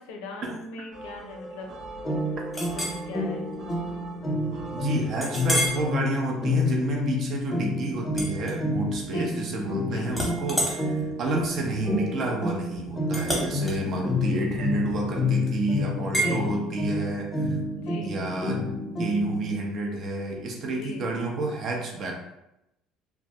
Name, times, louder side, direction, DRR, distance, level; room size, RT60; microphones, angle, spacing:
voice 1, 0.0-1.7 2.2-2.3 2.8-3.5 9.1-9.3 9.9-10.2 16.0-16.5 17.8-18.1 20.7-21.0, left 3 dB, 80° left, 2 dB, 0.5 m, -40 dB
sound 1, 0.9-6.0, right 2 dB, 85° right, 0.8 m, -41 dB
sound 2, 2.0-19.5, left 2 dB, 25° left, 0.5 m, -29 dB
Chink clink, 2.5-3.0 3.5-3.7 4.2-4.3 5.2-5.8 6.4-6.6 8.1-9.1 9.4-9.8 10.1-15.2 16.1-16.3, right 1 dB, ahead, 1.0 m, -31 dB
voice 2, 4.7-17.6 18.0-18.6 19.0-22.3, right 2 dB, 55° right, 0 dB, 0.6 m, -30 dB
2.3 x 2.1 x 2.7 m, 0.86 s
supercardioid pair, 85°, 0 cm